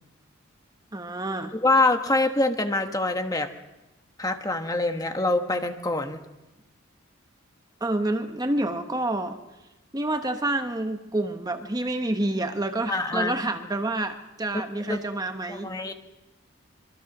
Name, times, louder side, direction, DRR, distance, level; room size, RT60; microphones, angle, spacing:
voice 1, 0.9-1.5 7.8-9.4 9.9-15.7, right 2 dB, 20° right, 6 dB, 1.1 m, -28 dB
voice 2, 1.5-3.5 4.2-6.2 12.9-13.3 14.9-15.0 15.5-15.9, left 2 dB, 15° left, 6 dB, 1.2 m, -25 dB
25.5 x 23.5 x 6.1 m, 0.99 s
head